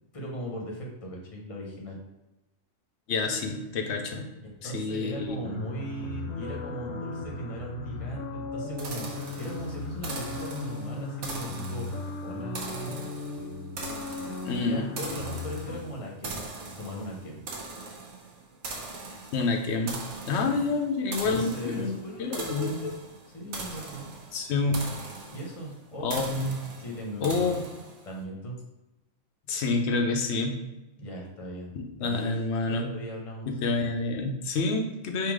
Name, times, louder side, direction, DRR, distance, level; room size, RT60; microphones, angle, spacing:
voice 1, 0.1-2.0 4.4-12.9 14.6-16.4 16.8-17.4 20.3-20.6 21.2-23.0 23.3-24.1 25.3-26.1 26.8-27.6 28.0-28.6 31.0-31.7 32.0-33.5, equal, 30° left, -2 dB, 0.9 m, -38 dB
voice 2, 3.1-4.3 4.6-5.6 14.4-14.9 19.3-20.0 20.3-21.9 22.2-22.8 24.3-24.8 26.0-26.5 27.2-27.6 29.5-30.6 31.8-32.9 33.6-35.3, left 3 dB, 60° left, 3 dB, 0.9 m, -28 dB
sound 1, 5.4-15.7, left 3 dB, 85° left, 1.2 m, -37 dB
sound 2, 8.8-28.2, right 3 dB, 65° right, 1.0 m, -41 dB
3.8 x 2.9 x 4.7 m, 1.0 s
omnidirectional pair, 1.4 m